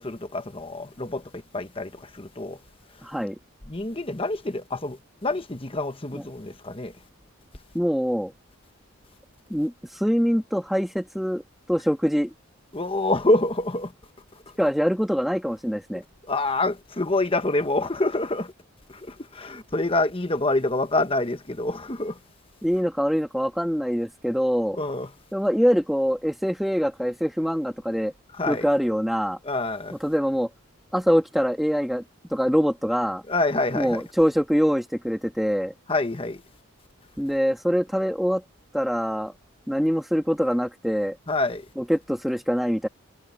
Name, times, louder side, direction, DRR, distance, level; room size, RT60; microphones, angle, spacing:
voice 1, 0.0-2.6 3.7-6.9 12.7-13.9 15.9-16.0 16.3-18.5 18.9-22.2 24.7-25.1 28.4-28.7 29.4-30.0 33.3-34.0 35.9-36.4 41.3-41.6, left 2 dB, 25° left, 1.1 m, -26 dB
voice 2, 3.0-3.4 6.1-6.2 7.7-8.3 9.5-11.4 11.7-12.3 14.6-16.0 22.6-24.8 25.3-28.1 28.5-29.4 29.9-30.5 30.9-32.0 32.3-33.2 33.7-35.7 37.2-38.4 38.7-39.3 39.7-41.2 41.8-42.9, equal, ahead, 2.0 m, -24 dB
head